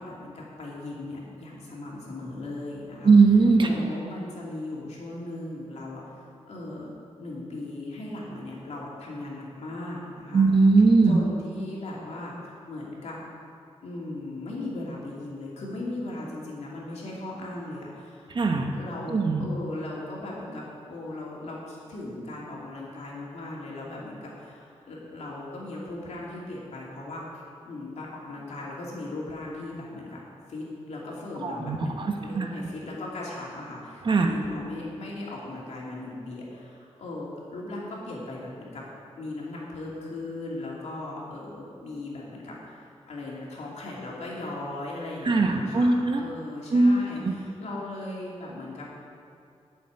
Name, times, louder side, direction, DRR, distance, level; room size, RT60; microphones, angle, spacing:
voice 1, 0.0-3.1 3.6-6.9 7.2-10.4 11.1-13.2 13.8-18.3 18.7-30.2 30.5-38.8 39.2-48.9, left 2 dB, 70° left, -4 dB, 2.8 m, -38 dB
voice 2, 3.0-3.7 10.3-11.2 18.3-18.7 19.1-19.5 31.4-32.5 34.1-34.3 45.2-46.2 46.7-47.3, right 3 dB, 45° right, 3 dB, 1.1 m, -20 dB
8.6 x 7.2 x 8.8 m, 2.5 s
wide cardioid pair, 130°, 12 cm